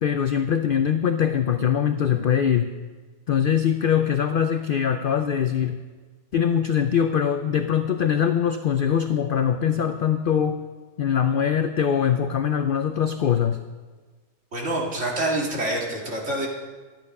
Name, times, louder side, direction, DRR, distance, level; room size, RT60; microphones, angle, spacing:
voice 1, 0.0-2.7 3.3-5.8 6.3-10.6 11.0-13.6, left 8 dB, 70° left, 8 dB, 0.5 m, -22 dB
voice 2, 14.5-16.5, right 1 dB, 55° right, -2 dB, 2.5 m, -26 dB
12.5 x 9.3 x 5.3 m, 1.4 s
omnidirectional pair, 1.5 m